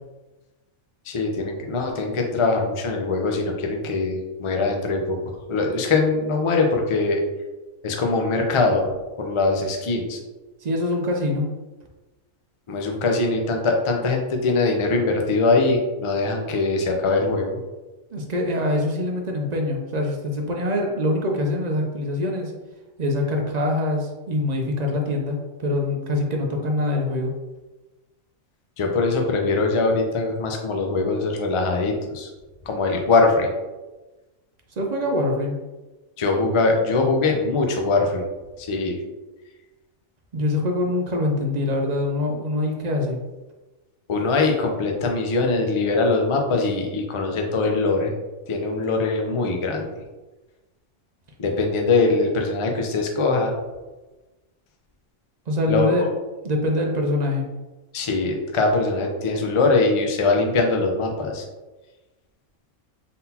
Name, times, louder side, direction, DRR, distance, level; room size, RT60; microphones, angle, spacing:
voice 1, 1.1-5.2 5.5-7.2 7.8-8.8 9.2-10.2 12.7-17.6 28.8-32.3 32.7-33.5 36.2-38.3 38.6-39.0 44.1-48.1 48.5-49.9 51.4-53.5 55.7-56.1 57.9-61.4, left 3 dB, 55° left, 2 dB, 0.3 m, -22 dB
voice 2, 10.6-11.4 18.1-22.5 23.0-27.3 34.8-35.6 40.3-43.2 55.5-56.1 56.4-57.4, left 1 dB, 55° right, 1 dB, 0.4 m, -24 dB
3.9 x 3.7 x 2.8 m, 1.1 s
omnidirectional pair, 1.4 m